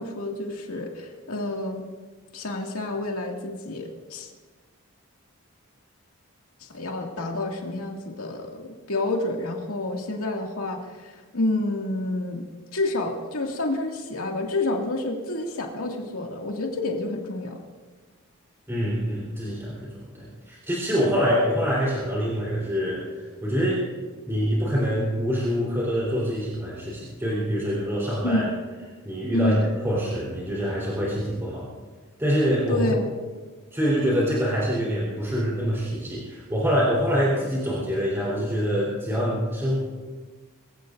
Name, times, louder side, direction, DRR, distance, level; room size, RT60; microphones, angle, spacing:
voice 1, 0.0-1.8 2.3-4.3 6.6-12.4 12.7-17.6 28.2-28.4 29.3-29.7 32.7-33.1, left 2 dB, 85° left, 0 dB, 2.3 m, -29 dB
voice 2, 18.7-23.8 24.3-28.5 29.1-29.5 29.8-31.7 32.2-32.9 33.7-39.7, equal, 10° right, -6 dB, 4.0 m, -25 dB
24.5 x 16.5 x 2.7 m, 1.4 s
head